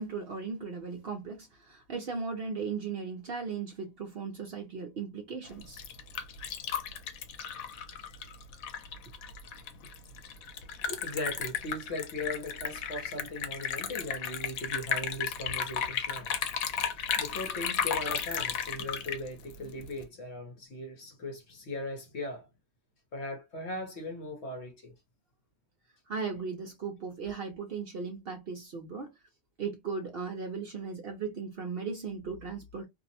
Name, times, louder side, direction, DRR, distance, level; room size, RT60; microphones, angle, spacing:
voice 1, 0.0-5.8 26.1-29.1 29.6-32.9, right 5 dB, 55° right, 0.7 m, -37 dB
Liquid, 5.5-20.0, left 7 dB, 85° left, 1.0 m, -34 dB
voice 2, 10.9-22.5 23.1-24.9 27.2-27.3, left 1 dB, 60° left, 1.0 m, -39 dB
2.6 x 2.0 x 2.7 m
omnidirectional pair, 1.4 m